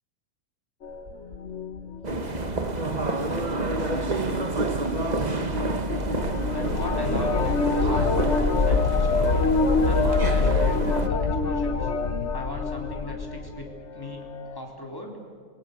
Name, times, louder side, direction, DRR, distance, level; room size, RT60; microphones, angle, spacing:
sound 1, 0.8-3.3 5.9-13.7 14.0-14.6, left 3 dB, 45° left, 1.3 m, -25 dB
sound 2, 2.0-11.1, right 2 dB, 25° right, 1.4 m, -28 dB
voice 1, 6.5-9.5 9.9-11.9 12.3-15.2, left 1 dB, 10° left, 0 dB, 3.8 m, -38 dB
26.5 x 23.0 x 6.9 m, 2.2 s
omnidirectional pair, 1.8 m